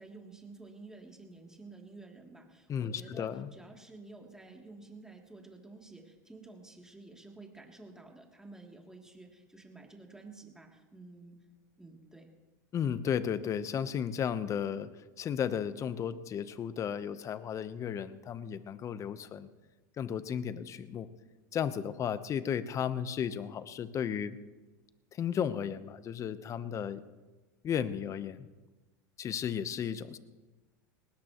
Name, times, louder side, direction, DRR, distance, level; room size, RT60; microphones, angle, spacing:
voice 1, 0.0-11.4 11.8-12.3, right 3 dB, 5° right, 0 dB, 2.9 m, -51 dB
voice 2, 2.7-3.5 12.7-14.9 15.2-19.5 20.0-21.1 21.5-24.4 25.1-27.0 27.6-28.5 29.2-30.2, left 8 dB, 30° left, 13 dB, 1.0 m, -34 dB
19.5 x 18.5 x 3.1 m, 1.2 s
hypercardioid pair, 105°, 10 cm